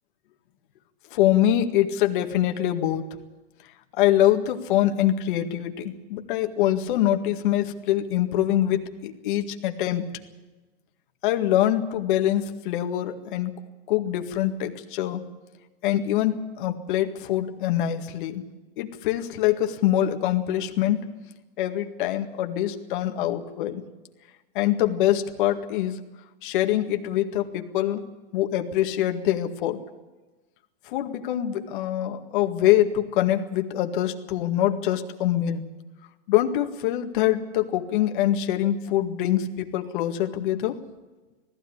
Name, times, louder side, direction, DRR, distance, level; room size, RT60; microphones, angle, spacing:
voice 1, 1.1-3.2 4.0-10.0 11.2-13.6 13.9-15.3 15.8-18.4 18.8-21.0 21.6-23.8 24.6-26.0 26.4-28.0 28.3-29.8 30.9-35.6 36.3-40.8, left 12 dB, 50° left, 6 dB, 2.0 m, -24 dB
19.0 x 15.5 x 10.0 m, 1.2 s
hypercardioid pair, 150°, 32 cm